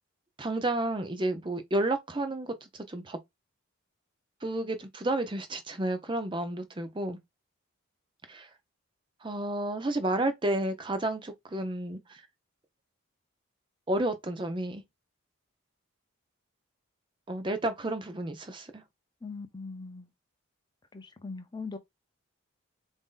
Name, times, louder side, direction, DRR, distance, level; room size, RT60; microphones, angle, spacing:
voice 1, 0.4-3.2 4.4-7.2 8.3-8.5 9.2-12.2 13.9-14.8 17.3-18.8, right 1 dB, 20° right, 0.6 m, -31 dB
voice 2, 19.2-20.1 20.9-21.8, left 4 dB, 20° left, 0.6 m, -40 dB
4.0 x 2.7 x 3.7 m
head